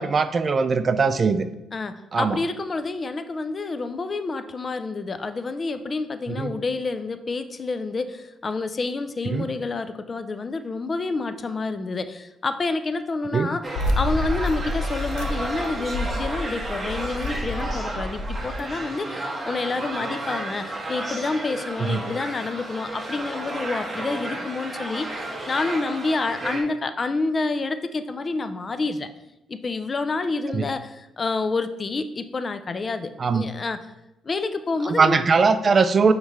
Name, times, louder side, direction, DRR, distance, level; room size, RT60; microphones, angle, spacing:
voice 1, 0.0-1.4 2.1-2.4 6.4-6.5 9.3-9.4 13.3-13.5 21.9-22.0 30.5-30.6 33.2-33.4 35.0-36.1, right 4 dB, 40° right, 12 dB, 0.4 m, -20 dB
voice 2, 1.7-29.1 29.5-33.9 34.2-35.2, left 3 dB, 35° left, 11 dB, 0.4 m, -28 dB
sound 1, 13.6-26.6, right 1 dB, 20° right, 1.5 m, -33 dB
sound 2, 13.8-18.6, left 1 dB, 85° left, 0.6 m, -29 dB
9.1 x 3.2 x 3.5 m, 0.92 s
cardioid pair, 90°, 0 cm